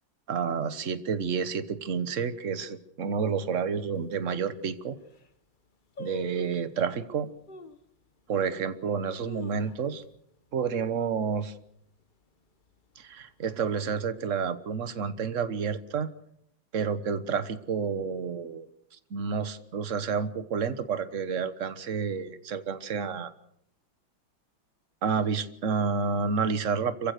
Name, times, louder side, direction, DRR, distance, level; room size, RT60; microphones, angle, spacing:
voice 1, 0.3-4.9 6.0-7.3 8.3-10.0 10.5-11.5 13.0-16.1 16.7-18.7 19.1-23.3 25.0-27.1, right 6 dB, 45° right, 12 dB, 1.3 m, -30 dB
sound 1, 3.9-4.0 4.7-4.8 5.0-5.4 6.0-6.7 7.5-7.9 8.4-8.5 9.0-10.1 10.4-10.5 10.9-11.2 11.6-12.0 12.6-13.4 13.7-13.8, left 4 dB, 40° left, 0.7 m, -45 dB
26.5 x 15.5 x 6.6 m, 0.72 s
omnidirectional pair, 2.3 m